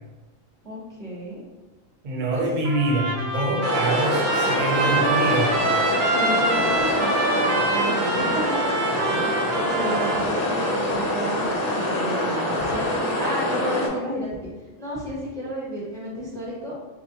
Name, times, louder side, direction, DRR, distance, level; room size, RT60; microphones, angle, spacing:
voice 1, 0.6-1.4 2.3-2.4 6.0-8.4 8.7-8.9 9.6-14.5 14.8-16.7, equal, 5° left, -5 dB, 0.6 m, -32 dB
voice 2, 2.0-5.6, right 2 dB, 50° right, -1 dB, 0.6 m, -25 dB
Trumpet, 2.6-10.3, right 3 dB, 80° right, 1.0 m, -26 dB
sound 1, 3.6-13.9, left 1 dB, 55° left, 0.7 m, -25 dB
4.2 x 2.1 x 2.8 m, 1.2 s
omnidirectional pair, 1.4 m